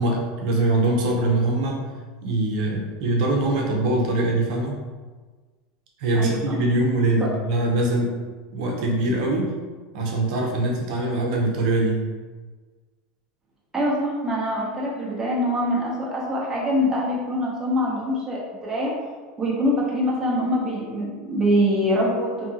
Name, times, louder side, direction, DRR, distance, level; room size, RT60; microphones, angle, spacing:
voice 1, 0.0-1.8 2.2-4.8 6.0-8.2 8.5-9.5 9.9-12.0, right 2 dB, 70° right, -1 dB, 0.6 m, -23 dB
voice 2, 6.1-6.6 13.7-18.9 19.4-22.5, equal, 10° right, -6 dB, 0.7 m, -24 dB
2.7 x 2.5 x 2.8 m, 1.4 s
supercardioid pair, 155°, 4 cm